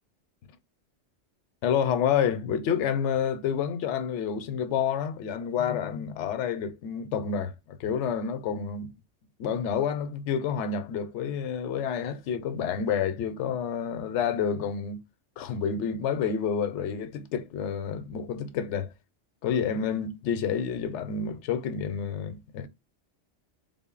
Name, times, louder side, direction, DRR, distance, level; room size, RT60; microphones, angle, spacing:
voice 1, 1.6-8.9 9.4-15.0 15.4-18.9 19.4-22.7, left 7 dB, 80° left, 0.9 m, -29 dB
3.7 x 2.1 x 3.7 m
omnidirectional pair, 1.2 m